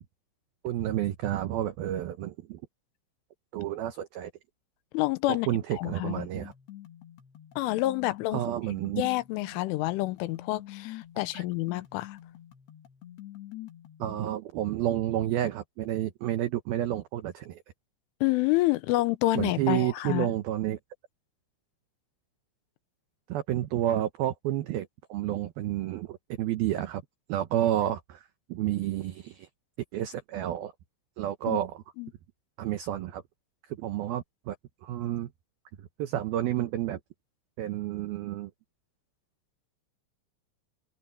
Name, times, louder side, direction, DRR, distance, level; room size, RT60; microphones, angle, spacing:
voice 1, 0.6-2.6 3.5-4.3 5.3-6.5 8.3-9.0 11.3-11.4 14.0-17.6 19.4-20.8 23.3-27.0 27.3-29.5 29.9-30.7 31.2-31.7 32.6-33.2 33.8-34.6 34.8-35.3 35.8-37.0 37.6-38.5, right 12 dB, 85° right, 2.1 m, -30 dB
voice 2, 4.9-6.3 7.6-8.4 9.0-12.2 18.2-20.3 31.5-31.6 32.0-32.1, left 19 dB, 85° left, 3.3 m, -28 dB
sound 1, 6.4-14.4, left 14 dB, 65° left, 3.4 m, -46 dB
omnidirectional pair, 5.7 m